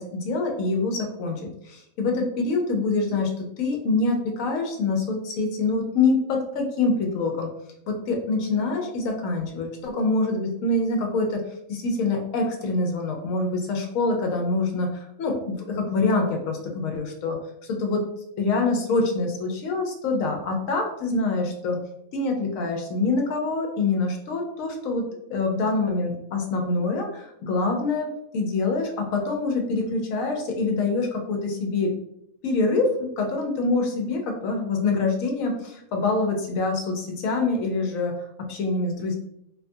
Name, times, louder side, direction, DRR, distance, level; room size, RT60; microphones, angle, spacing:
voice 1, 0.0-7.5 7.9-11.4 11.7-18.0 18.4-21.8 22.1-25.0 25.3-28.1 28.3-31.9 32.4-39.2, left 3 dB, 75° left, 2 dB, 1.0 m, -25 dB
2.6 x 2.3 x 2.6 m, 0.78 s
omnidirectional pair, 1.5 m